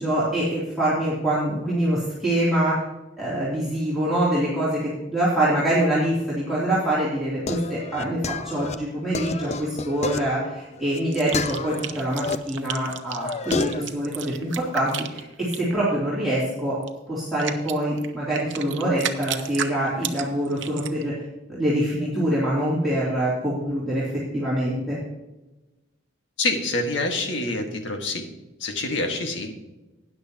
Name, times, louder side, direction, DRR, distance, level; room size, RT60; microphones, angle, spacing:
voice 1, 0.0-2.8 3.2-16.8 17.1-21.1 21.5-25.0, right 1 dB, ahead, -11 dB, 3.0 m, -25 dB
sound 1, 6.9-12.4 12.8-13.9, left 4 dB, 35° left, 0.5 m, -31 dB
sound 2, 11.1-15.8 16.8-16.9 17.4-21.0, right 9 dB, 70° right, 0.8 m, -33 dB
voice 2, 26.4-28.3 28.6-29.6, left 2 dB, 70° left, 3 dB, 1.7 m, -26 dB
13.0 x 9.9 x 2.9 m, 1.0 s
head